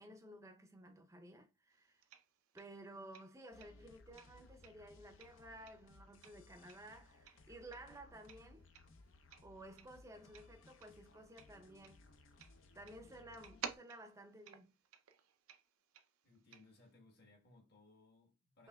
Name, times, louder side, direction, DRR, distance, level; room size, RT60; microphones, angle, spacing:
voice 1, 0.0-2.0 2.5-8.7 9.4-12.0 12.7-14.7, right 1 dB, 15° right, 0.5 m, -55 dB
sound 1, 1.7-6.4 6.7-16.9, right 8 dB, 85° right, 0.5 m, -54 dB
sound 2, 3.5-13.8, left 2 dB, 65° left, 0.5 m, -63 dB
voice 2, 16.2-18.7, left 3 dB, 50° left, 1.2 m, -65 dB
5.5 x 3.1 x 2.2 m
head